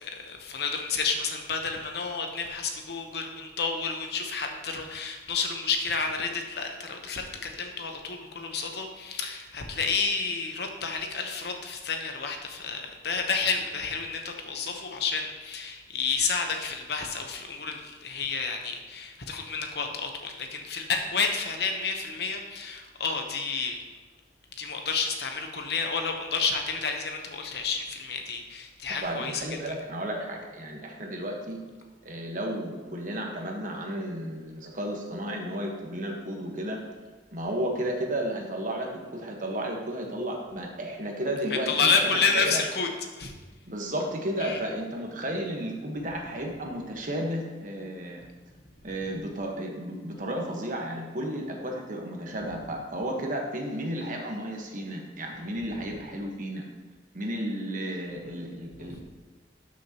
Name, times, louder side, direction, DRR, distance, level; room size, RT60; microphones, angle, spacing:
voice 1, 0.0-23.8 24.6-29.7 41.7-42.9 43.2-43.3 44.4-44.6 58.8-59.0, left 5 dB, 65° left, 4 dB, 1.0 m, -30 dB
voice 2, 29.0-31.6 32.0-36.8 37.3-42.6 43.7-48.2 48.8-56.6 57.1-59.0, right 1 dB, 45° right, 1 dB, 1.3 m, -33 dB
12.5 x 6.3 x 3.0 m, 1.3 s
head